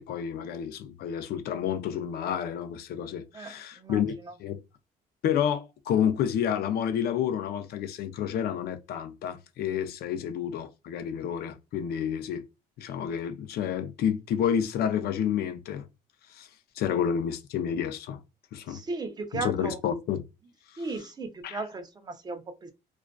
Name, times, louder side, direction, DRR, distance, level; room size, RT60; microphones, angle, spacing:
voice 1, 0.0-4.1 4.4-4.6 5.2-12.4 12.8-15.8 16.3-16.5 16.8-18.2 18.5-18.8 19.3-20.2 21.4-21.6, left 9 dB, 65° left, 0.5 m, -29 dB
voice 2, 3.3-4.3 18.7-19.8 20.8-22.7, right 3 dB, 25° right, 0.5 m, -36 dB
2.4 x 2.3 x 2.2 m
cardioid pair, 110°, 17 cm